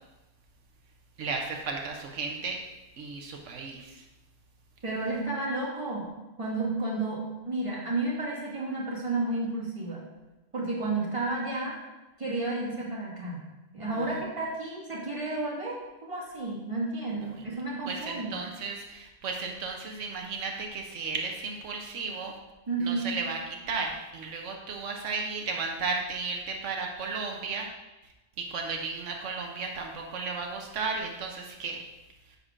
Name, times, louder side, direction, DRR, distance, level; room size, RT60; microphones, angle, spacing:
voice 1, 1.2-2.6 3.0-4.0 17.9-22.3 22.8-23.4 23.7-27.7 28.4-31.8, right 4 dB, 85° right, 2 dB, 1.1 m, -34 dB
voice 2, 4.8-6.1 6.4-10.0 10.5-11.7 12.2-13.4 13.7-18.4 22.7-23.2, right 2 dB, 25° right, -6 dB, 2.0 m, -31 dB
9.6 x 6.5 x 2.5 m, 1.1 s
omnidirectional pair, 1.2 m